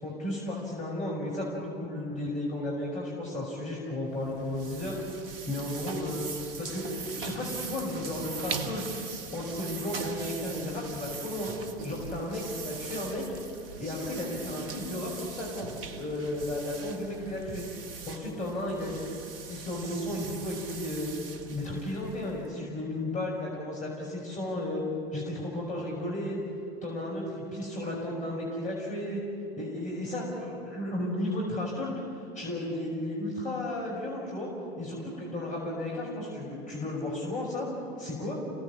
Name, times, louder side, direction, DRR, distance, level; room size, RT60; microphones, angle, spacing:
voice 1, 0.0-5.0 5.5-6.3 6.6-8.8 9.3-11.5 11.8-13.4 13.8-17.6 18.1-19.1 19.5-21.1 21.5-24.8 25.1-26.4 26.8-29.2 29.6-34.5 34.8-37.7 38.0-38.3, left 1 dB, 25° left, -3 dB, 5.8 m, -34 dB
sound 1, 4.1-22.6, right 5 dB, 60° right, 1.3 m, -41 dB
29.0 x 18.0 x 7.4 m, 2.5 s
figure-of-eight pair, 80°, 32 cm